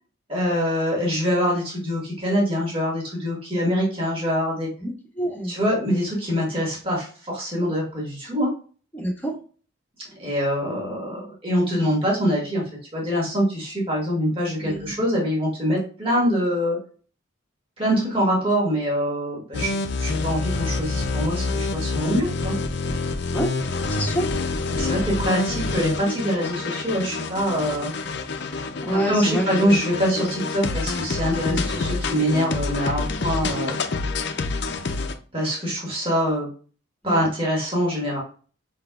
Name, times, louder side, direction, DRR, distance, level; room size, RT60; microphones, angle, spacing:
voice 1, 0.3-4.7 5.5-8.5 10.2-12.6 12.9-16.8 17.8-22.5 24.7-27.9 28.9-33.7 35.3-36.5 37.0-38.2, equal, 25° right, -3 dB, 1.7 m, -24 dB
voice 2, 5.2-5.5 8.9-9.3 14.6-14.9 23.3-23.5 23.9-24.2 28.8-29.8 31.5-31.7 37.0-37.2, right 1 dB, 10° left, -3 dB, 1.2 m, -27 dB
sound 1, 19.5-35.1, left 3 dB, 55° left, 0.5 m, -27 dB
5.4 x 3.7 x 2.3 m, 0.39 s
head